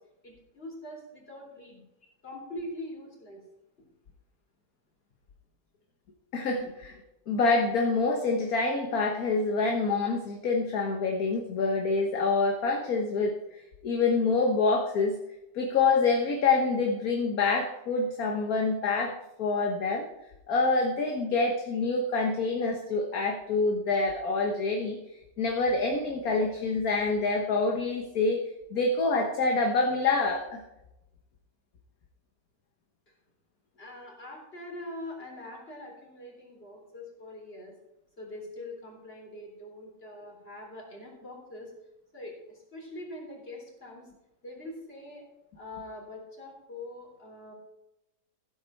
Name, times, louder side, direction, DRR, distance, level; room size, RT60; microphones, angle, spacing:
voice 1, 0.2-1.8 2.2-3.4 33.8-37.8 38.2-41.7 42.1-44.1 44.4-45.2 45.5-47.5, left 1 dB, 35° left, -1 dB, 4.0 m, -43 dB
voice 2, 6.3-7.0 7.3-13.4 13.8-15.2 15.5-20.1 20.5-25.0 25.4-28.4 28.7-30.6, left 3 dB, 60° left, 2 dB, 1.6 m, -26 dB
15.0 x 8.2 x 4.5 m, 0.91 s
omnidirectional pair, 1.9 m